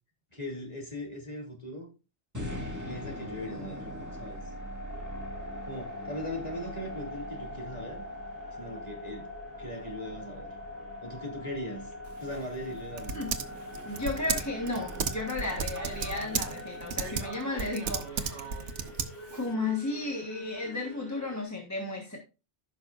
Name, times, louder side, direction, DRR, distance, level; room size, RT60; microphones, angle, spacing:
voice 1, 0.3-1.9 2.8-3.8 4.2-4.5 5.7-8.0 8.6-9.3 9.6-10.5 11.0-11.9 12.2-13.2, left 1 dB, 35° left, 3.1 m, -39 dB
sound 1, 2.3-18.5, equal, 15° right, 2.1 m, -42 dB
sound 2, 4.9-21.4, left 2 dB, 65° left, 2.3 m, -47 dB
Typing, 12.1-19.5, right 6 dB, 80° right, 1.2 m, -35 dB
voice 2, 13.8-18.8 19.3-22.2, left 3 dB, 15° left, 1.4 m, -34 dB
15.0 x 6.2 x 2.5 m
omnidirectional pair, 1.2 m